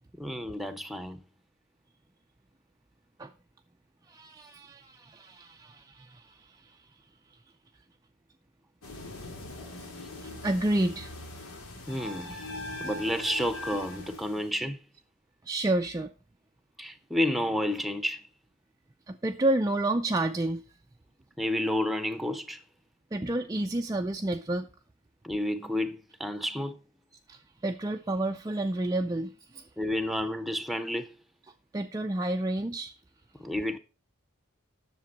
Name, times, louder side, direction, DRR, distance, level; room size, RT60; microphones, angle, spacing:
voice 1, 0.2-1.2 11.9-12.5 12.8-14.8 16.8-18.2 21.4-22.6 25.2-26.8 29.8-31.1 33.4-33.8, left 1 dB, ahead, 0.8 m, -30 dB
voice 2, 4.1-6.9 9.6-9.7 10.2-11.1 15.5-16.1 19.1-20.6 23.1-24.7 27.3-29.6 31.7-32.9, right 1 dB, 15° right, 0.4 m, -30 dB
sound 1, 8.8-14.6, left 1 dB, 85° left, 2.3 m, -41 dB
10.5 x 6.9 x 5.3 m
head